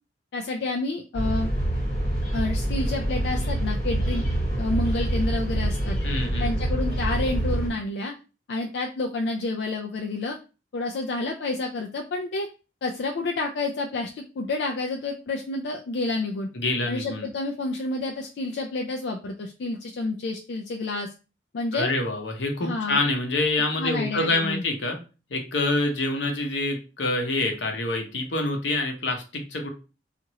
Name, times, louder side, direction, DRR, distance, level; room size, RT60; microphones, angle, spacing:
voice 1, 0.3-1.5 2.3-4.2 4.6-6.0 6.4-8.1 8.5-10.4 10.7-12.5 12.8-16.5 16.8-21.1 21.5-21.9 22.6-23.0 23.8-24.6, left 2 dB, 65° left, 1 dB, 0.4 m, -29 dB
sound 1, 1.1-7.7, right 1 dB, 45° left, 1.7 m, -26 dB
voice 2, 6.0-6.5 16.5-17.3 21.7-25.0 25.3-29.7, left 2 dB, 85° left, 3 dB, 0.8 m, -26 dB
2.8 x 2.5 x 2.9 m, 0.33 s
head